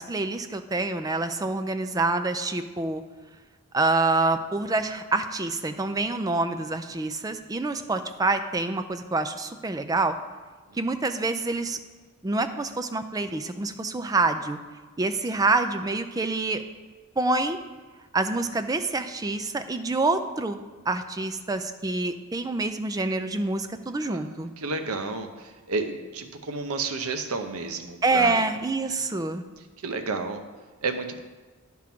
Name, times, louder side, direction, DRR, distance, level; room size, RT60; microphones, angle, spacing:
voice 1, 0.0-3.0 3.7-10.1 10.8-11.8 12.2-14.6 15.0-16.6 17.2-17.6 18.1-20.6 20.9-24.5 28.0-29.4, right 3 dB, 15° right, 9 dB, 0.4 m, -26 dB
voice 2, 24.1-28.4 28.8-29.0 29.8-30.4 30.8-31.2, right 3 dB, 80° right, 7 dB, 0.8 m, -32 dB
10.5 x 3.7 x 5.9 m, 1.3 s
head